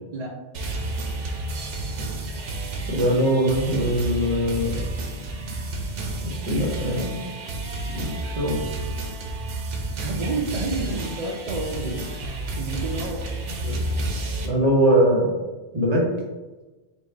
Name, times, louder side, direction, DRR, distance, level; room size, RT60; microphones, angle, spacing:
sound 1, 0.5-14.5, right 2 dB, 85° right, 1.0 m, -31 dB
voice 1, 2.9-4.9 6.2-7.2 7.9-8.6 11.8-11.9 13.6-13.8 14.4-15.3 15.7-16.1, equal, 35° right, -3 dB, 1.0 m, -22 dB
voice 2, 10.0-13.3, right 2 dB, 60° right, 1 dB, 0.4 m, -30 dB
4.1 x 2.3 x 4.4 m, 1.2 s
omnidirectional pair, 1.2 m